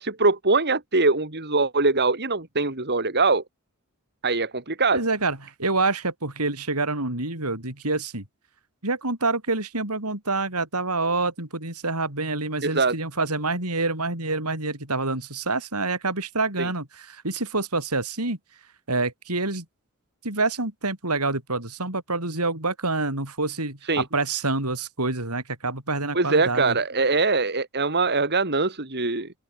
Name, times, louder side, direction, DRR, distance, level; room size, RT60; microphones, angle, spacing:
voice 1, 0.0-3.4 4.2-5.0 12.6-13.0 16.6-16.7 23.9-24.0 26.1-29.3, right 3 dB, 50° right, 3.9 m, -22 dB
voice 2, 4.9-8.2 8.8-18.4 18.9-19.6 20.2-26.8, right 3 dB, 90° right, 7.2 m, -27 dB
open air
head